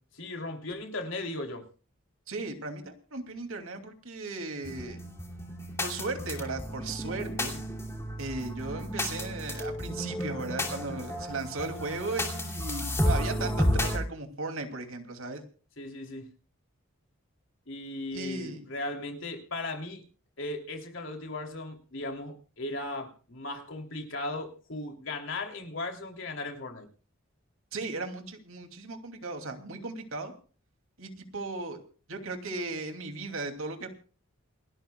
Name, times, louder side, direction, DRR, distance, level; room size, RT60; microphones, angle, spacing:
voice 1, 0.2-1.6 15.8-16.3 17.7-20.0 20.4-26.9, left 2 dB, 65° left, 3 dB, 3.0 m, -37 dB
voice 2, 2.3-5.0 5.8-7.5 8.2-15.4 18.1-18.6 27.7-30.3 31.0-31.8 32.1-33.9, right 3 dB, 75° right, 5 dB, 2.7 m, -36 dB
sound 1, 4.6-14.0, equal, 10° left, 2.8 m, -32 dB
28.0 x 12.5 x 2.3 m, 0.38 s
head